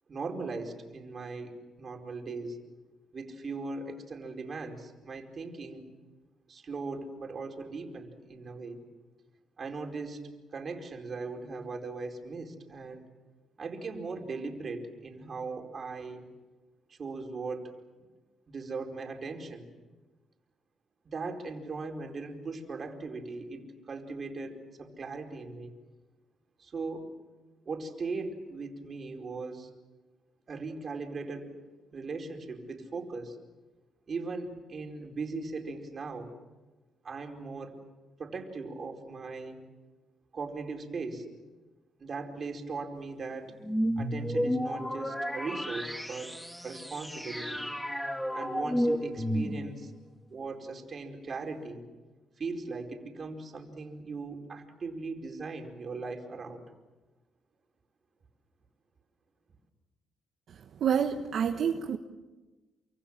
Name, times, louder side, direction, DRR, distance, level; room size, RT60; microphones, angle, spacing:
voice 1, 0.1-2.6 3.1-5.8 6.5-8.8 9.6-13.0 13.6-16.2 16.9-17.7 18.5-19.7 21.0-25.7 26.6-27.1 27.6-29.7 30.5-31.6 31.9-33.4 34.1-36.3 37.0-37.8 38.2-39.6 40.3-41.3 42.0-43.5 44.0-46.4 46.6-47.6 48.3-49.9 50.3-51.8 52.4-56.6, right 3 dB, 45° right, 3 dB, 4.7 m, -39 dB
sound 1, 43.6-49.9, equal, 5° left, 2.2 m, -32 dB
voice 2, 60.8-62.0, right 8 dB, 65° right, 5 dB, 1.4 m, -27 dB
28.0 x 25.5 x 7.4 m, 1.2 s
cardioid pair, 90°, 0 cm